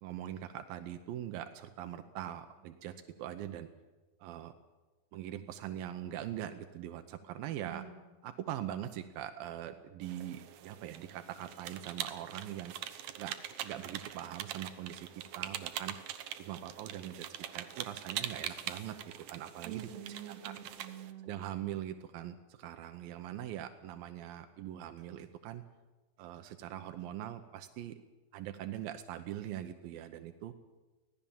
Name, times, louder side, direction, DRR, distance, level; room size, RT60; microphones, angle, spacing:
voice 1, 0.0-2.9 3.2-3.7 4.2-4.5 5.1-7.8 8.2-12.7 13.2-13.4 13.6-15.1 15.4-16.0 16.4-20.5 21.2-25.6 26.2-28.0 28.3-30.5, right 11 dB, 85° right, 8 dB, 2.7 m, -42 dB
voice 2, 7.6-8.0 19.6-21.3, right 10 dB, 50° right, 2 dB, 3.7 m, -46 dB
sound 1, 10.0-21.1, right 11 dB, 70° right, 2.4 m, -43 dB
25.0 x 17.5 x 7.2 m, 1.2 s
omnidirectional pair, 4.0 m